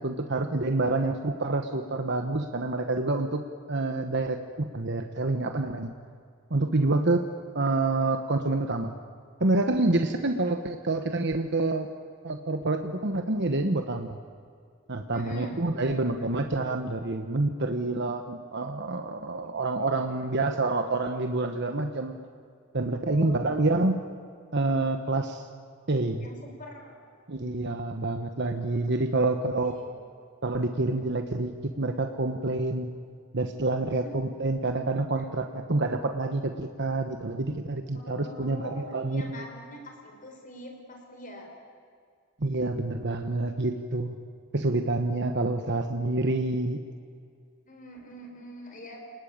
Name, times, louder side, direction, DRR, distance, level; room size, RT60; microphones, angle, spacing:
voice 1, 0.0-5.9 6.5-7.2 7.5-8.9 9.4-11.9 12.2-14.2 14.9-22.2 22.7-24.0 24.5-25.5 25.9-26.3 27.3-29.7 30.4-31.5 31.8-32.9 33.3-39.4 42.4-44.1 44.5-46.8, right 2 dB, 55° right, 6 dB, 1.3 m, -27 dB
voice 2, 15.1-16.0 19.3-20.0 23.0-23.5 26.2-26.9 29.1-29.3 29.6-30.0 34.0-34.2 35.2-35.3 37.9-41.5 45.1-45.3 47.6-49.0, equal, 40° left, 2 dB, 5.8 m, -44 dB
29.0 x 20.0 x 8.9 m, 2.2 s
head